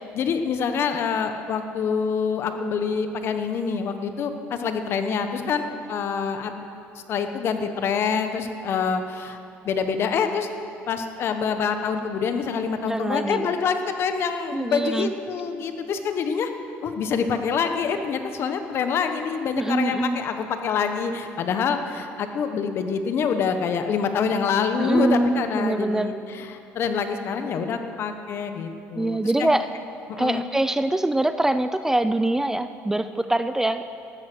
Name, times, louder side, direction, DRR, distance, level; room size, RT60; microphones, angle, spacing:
voice 1, 0.0-6.6 7.1-9.4 9.6-10.5 10.9-16.5 16.8-29.5 30.1-30.4, left 6 dB, 55° left, 8 dB, 1.2 m, -26 dB
voice 2, 12.9-13.5 14.5-15.1 19.5-20.2 24.8-26.2 29.0-29.7 30.2-33.8, right 2 dB, 10° right, 11 dB, 0.5 m, -24 dB
14.0 x 12.5 x 6.2 m, 2.6 s
cardioid pair, 105°, 5 cm